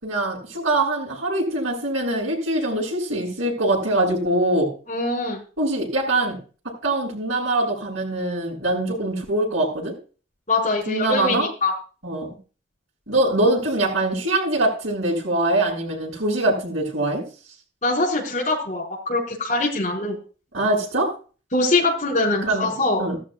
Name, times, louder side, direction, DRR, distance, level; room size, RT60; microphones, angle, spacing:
voice 1, 0.0-4.7 5.6-6.4 6.8-9.9 10.9-11.5 12.0-12.3 13.1-17.2 20.5-21.1 22.4-22.7 23.0-23.2, right 2 dB, 90° right, -8 dB, 7.4 m, -23 dB
voice 2, 4.9-5.4 10.5-11.7 17.8-20.2 21.5-23.0, left 2 dB, 35° left, -4 dB, 5.8 m, -23 dB
16.5 x 13.5 x 2.5 m, 0.36 s
head